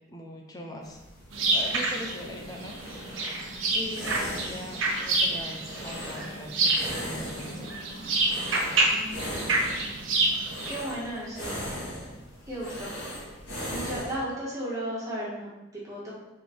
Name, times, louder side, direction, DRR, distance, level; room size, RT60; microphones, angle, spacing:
voice 1, 0.1-1.0 1.5-3.4 3.7-7.9, left 1 dB, 20° left, 0 dB, 0.8 m, -41 dB
sound 1, 0.8-14.2, equal, 60° left, 2.2 m, -39 dB
sound 2, 1.3-10.7, right 2 dB, 75° right, 1.2 m, -28 dB
voice 2, 8.9-9.6 10.6-11.6 12.5-12.9 13.7-16.1, right 1 dB, 15° right, -7 dB, 1.8 m, -35 dB
5.7 x 4.1 x 4.6 m, 0.99 s
head